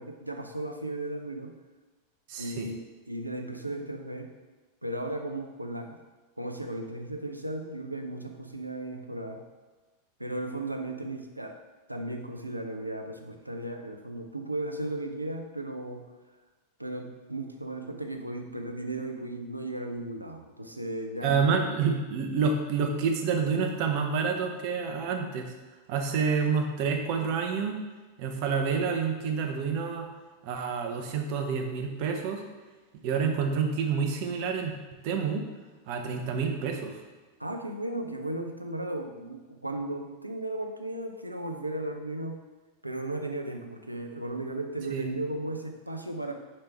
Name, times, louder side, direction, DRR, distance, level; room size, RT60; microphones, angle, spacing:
voice 1, 0.0-1.5 2.4-4.3 4.8-6.0 6.4-9.4 10.2-11.5 11.9-16.0 16.8-21.4 37.4-42.4 42.8-46.3, right 1 dB, 85° right, 3 dB, 0.6 m, -35 dB
voice 2, 2.3-2.7 21.2-25.5 25.9-27.8 28.2-30.1 30.4-32.4 33.0-34.7 35.0-35.4 35.9-37.0 44.9-45.1, right 5 dB, 45° right, 4 dB, 0.8 m, -28 dB
5.2 x 4.4 x 4.5 m, 1.2 s
figure-of-eight pair, 90°, 0 cm